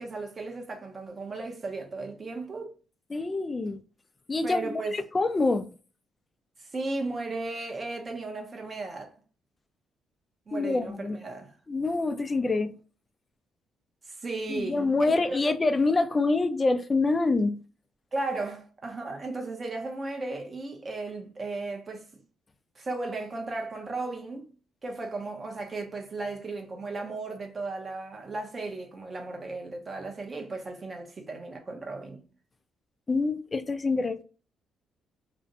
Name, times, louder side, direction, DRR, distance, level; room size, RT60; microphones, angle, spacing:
voice 1, 0.0-2.7 3.7-3.8 4.4-5.0 6.6-9.2 10.5-11.5 14.1-15.4 18.1-22.1 22.8-24.5 24.8-32.2, right 3 dB, 35° right, 0.7 m, -35 dB
voice 2, 3.1-3.8 4.3-5.7 10.5-11.2 11.7-12.8 14.5-17.6 33.1-34.2, left 3 dB, 25° left, 0.4 m, -26 dB
2.5 x 2.1 x 2.7 m
cardioid pair, 90°, 0 cm